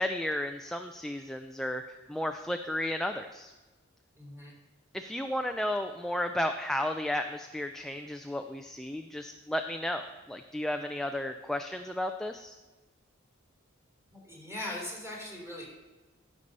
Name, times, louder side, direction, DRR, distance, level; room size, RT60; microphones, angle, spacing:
voice 1, 0.0-3.5 4.9-12.5, left 1 dB, ahead, 5 dB, 0.3 m, -33 dB
voice 2, 4.2-4.5 14.1-15.7, left 1 dB, 15° right, -2 dB, 3.5 m, -40 dB
12.5 x 6.8 x 5.3 m, 1.2 s
head